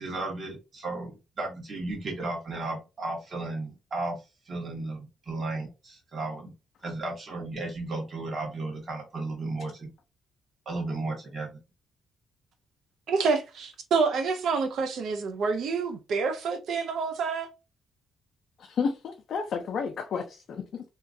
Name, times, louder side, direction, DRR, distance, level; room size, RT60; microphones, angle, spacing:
voice 1, 0.0-4.2 4.5-6.5 6.8-9.9 10.6-11.5, right 2 dB, 40° right, 1.4 m, -34 dB
voice 2, 13.1-17.5, right 5 dB, 70° right, 0.6 m, -27 dB
voice 3, 18.7-20.8, left 5 dB, 60° left, 0.5 m, -31 dB
2.9 x 2.4 x 2.5 m
cardioid pair, 90°, 0 cm